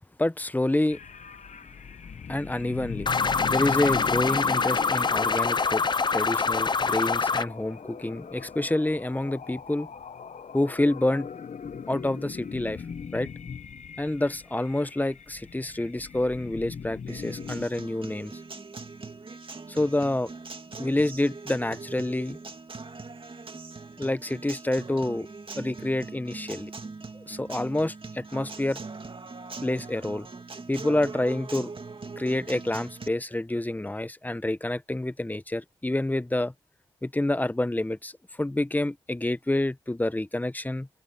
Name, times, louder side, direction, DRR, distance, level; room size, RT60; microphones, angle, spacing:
voice 1, 0.2-1.0 2.3-3.1 3.5-5.8 6.1-9.9 10.5-11.3 11.9-12.8 13.1-13.3 14.0-18.3 19.7-20.3 20.8-22.4 24.0-25.3 25.6-26.7 27.1-28.8 29.6-30.3 30.7-31.7 32.2-36.5 37.0-38.1 38.4-40.9, left 1 dB, 10° left, 1.0 m, -28 dB
sound 1, 0.9-17.6, left 6 dB, 55° left, 1.0 m, -40 dB
sound 2, 3.1-7.5, left 4 dB, 30° left, 0.5 m, -25 dB
Acoustic guitar, 17.1-33.1, right 4 dB, 40° right, 2.3 m, -41 dB
cardioid pair, 65°, 14 cm